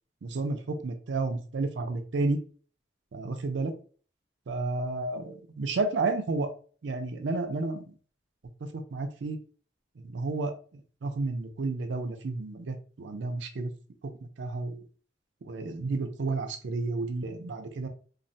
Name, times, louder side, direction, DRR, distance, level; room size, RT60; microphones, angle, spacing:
voice 1, 0.2-2.4 3.1-3.8 4.5-6.5 6.8-7.9 8.6-9.4 10.0-13.7 14.0-14.8 15.4-17.9, right 3 dB, 70° right, 7 dB, 0.5 m, -31 dB
3.1 x 2.1 x 2.6 m, 0.41 s
head